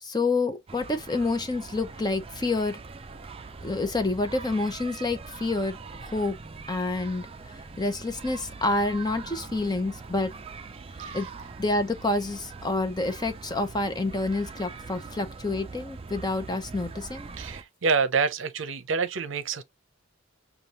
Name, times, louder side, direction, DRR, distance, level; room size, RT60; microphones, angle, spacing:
voice 1, 0.0-2.8 3.6-6.4 6.7-7.3 7.8-10.3 11.1-11.3 11.6-17.3, left 2 dB, 20° left, 0.7 m, -28 dB
sound 1, 0.7-17.6, right 4 dB, 30° right, 0.4 m, -42 dB
voice 2, 17.4-19.6, right 5 dB, 65° right, 0.7 m, -27 dB
6.7 x 2.3 x 2.9 m
head